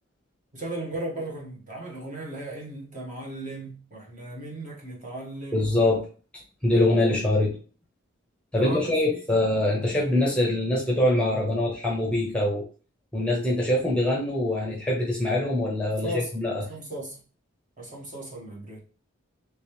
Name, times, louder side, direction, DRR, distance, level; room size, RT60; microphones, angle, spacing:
voice 1, 0.5-5.8 8.6-9.5 16.0-17.2 17.8-18.8, right 1 dB, 40° right, 1.2 m, -37 dB
voice 2, 5.5-6.0 6.6-7.6 8.5-12.7 13.1-16.5, left 1 dB, 5° left, 0.7 m, -24 dB
3.3 x 3.1 x 3.1 m
head